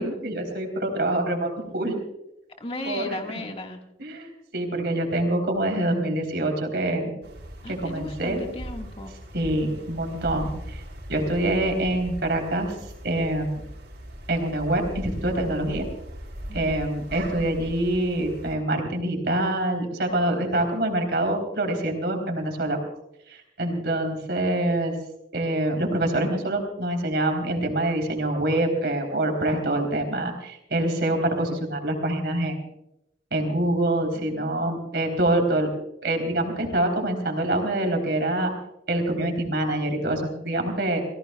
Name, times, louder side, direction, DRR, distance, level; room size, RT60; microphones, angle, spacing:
voice 1, 0.0-2.0 2.8-3.4 4.0-7.1 7.7-8.4 9.3-10.8 11.1-12.8 13.0-13.6 14.3-15.9 16.5-22.8 23.3-24.9 25.3-32.6 33.3-35.7 36.0-38.5 38.9-41.0, right 1 dB, 65° right, 3 dB, 3.5 m, -25 dB
voice 2, 2.6-3.8 7.6-9.1 16.5-16.7 34.2-34.7, left 1 dB, 35° left, 3 dB, 1.6 m, -36 dB
sound 1, 7.2-18.6, equal, 85° right, 5.3 m, -39 dB
29.5 x 16.5 x 2.3 m, 0.83 s
head